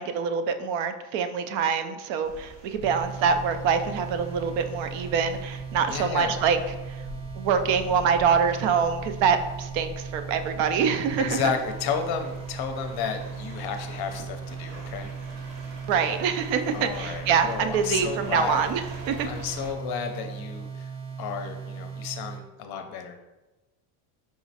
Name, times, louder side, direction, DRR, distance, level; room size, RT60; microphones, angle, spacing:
voice 1, 0.0-6.6 7.4-11.4 15.9-18.8 19.1-19.3, right 6 dB, 65° right, 8 dB, 0.5 m, -25 dB
sound 1, 2.2-19.7, right 1 dB, 85° right, 1.0 m, -44 dB
sound 2, 2.8-22.4, right 6 dB, 15° right, 0.5 m, -38 dB
voice 2, 5.9-6.4 11.2-15.1 16.7-18.7 19.3-20.9 21.2-23.2, left 6 dB, 50° left, 6 dB, 0.6 m, -32 dB
4.8 x 3.0 x 2.7 m, 1.1 s
cardioid pair, 130°, 49 cm